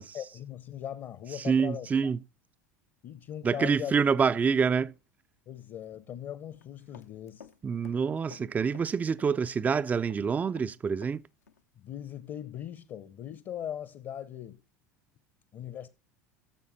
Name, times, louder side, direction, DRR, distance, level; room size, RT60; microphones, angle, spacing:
voice 1, 0.0-1.9 3.0-3.9 5.5-7.5 11.8-14.6 15.5-15.9, left 10 dB, 40° left, 0.8 m, -39 dB
voice 2, 1.3-2.2 3.4-4.9 7.6-11.2, right 6 dB, 20° right, 0.4 m, -27 dB
Run, 6.5-7.6 7.8-9.4 9.7-11.2 11.5-11.6, left 7 dB, 75° left, 0.8 m, -52 dB
14.5 x 7.0 x 4.0 m
figure-of-eight pair, 75°, 9 cm